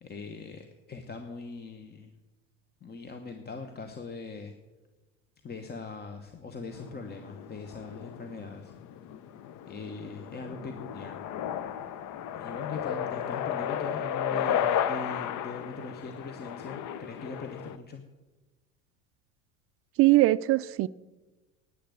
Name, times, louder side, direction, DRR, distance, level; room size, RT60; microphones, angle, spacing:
voice 1, 0.0-2.1 2.8-4.5 5.4-8.7 9.7-11.2 12.3-18.0, left 3 dB, 25° left, 1.1 m, -41 dB
sound 1, 6.7-17.8, left 9 dB, 50° left, 0.9 m, -34 dB
voice 2, 20.0-20.9, right 17 dB, 35° right, 0.4 m, -21 dB
10.0 x 9.4 x 7.9 m
hypercardioid pair, 70°, 39 cm